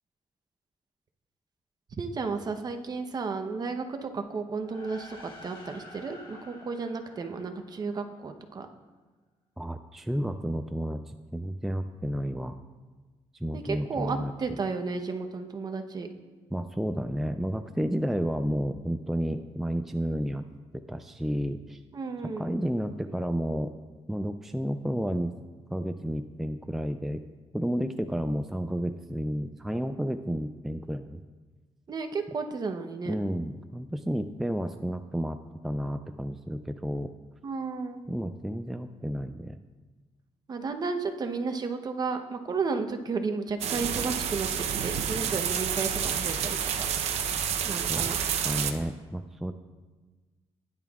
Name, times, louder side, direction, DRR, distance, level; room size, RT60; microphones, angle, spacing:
voice 1, 2.0-8.7 13.5-16.1 21.9-22.4 31.9-33.1 37.4-38.0 40.5-44.5 44.8-46.9 47.6-48.2, right 4 dB, 40° right, 6 dB, 0.9 m, -33 dB
sound 1, 4.5-8.2, left 2 dB, 45° left, 1.7 m, -49 dB
voice 2, 9.6-12.6 13.3-14.6 16.5-20.4 20.9-21.8 22.4-23.7 24.1-25.3 25.7-27.2 27.5-31.2 33.1-35.4 35.6-37.1 38.1-39.6 47.3-47.4 47.9-48.1 48.4-49.5, equal, 5° right, 8 dB, 0.3 m, -31 dB
sound 2, 43.6-48.7, right 8 dB, 75° right, 0.7 m, -29 dB
16.0 x 10.5 x 2.4 m, 1.3 s
cardioid pair, 120°, 11 cm